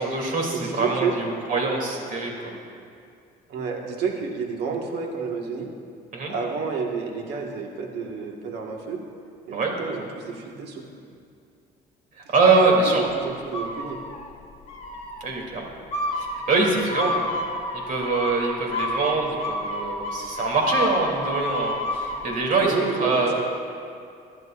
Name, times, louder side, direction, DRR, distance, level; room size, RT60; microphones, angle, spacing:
voice 1, 0.0-2.5 6.1-6.3 9.5-9.7 12.3-13.0 15.2-15.7 16.1-17.2 17.7-23.3, right 3 dB, 50° right, -1 dB, 3.0 m, -24 dB
voice 2, 0.5-1.2 3.5-5.7 6.3-9.0 9.5-10.8 12.2-12.3 12.8-14.0 22.6-23.4, right 5 dB, 80° right, 0 dB, 1.7 m, -30 dB
sound 1, 13.5-14.3 14.7-15.2 15.9-22.2, left 1 dB, 40° left, 1.5 m, -29 dB
23.5 x 10.5 x 2.6 m, 2.4 s
cardioid pair, 110°, 17 cm